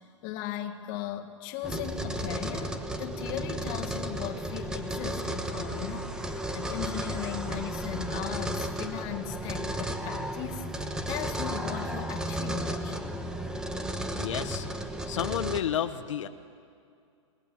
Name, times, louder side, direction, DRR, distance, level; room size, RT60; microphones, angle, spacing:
voice 1, 0.2-13.0, left 11 dB, 35° left, 4 dB, 1.9 m, -38 dB
sound 1, 1.6-15.6, right 1 dB, 5° right, 1.1 m, -34 dB
voice 2, 14.2-16.3, left 10 dB, 80° left, 7 dB, 1.0 m, -32 dB
29.0 x 19.5 x 7.2 m, 2.4 s
hypercardioid pair, 150°, 16 cm